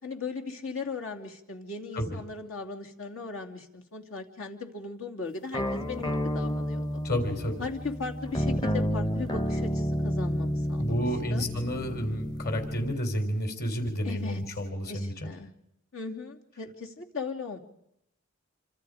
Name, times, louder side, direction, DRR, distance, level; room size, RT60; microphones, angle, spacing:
voice 1, 0.0-6.9 7.6-10.9 11.3-11.4 14.0-14.4 14.9-15.5 15.9-17.6, left 4 dB, 75° left, 2 dB, 3.0 m, -37 dB
sound 1, 5.5-13.0, equal, 20° left, 0.9 m, -30 dB
voice 2, 7.0-7.6 10.8-15.3, equal, 50° left, 6 dB, 4.1 m, -30 dB
28.0 x 25.5 x 5.1 m, 0.78 s
head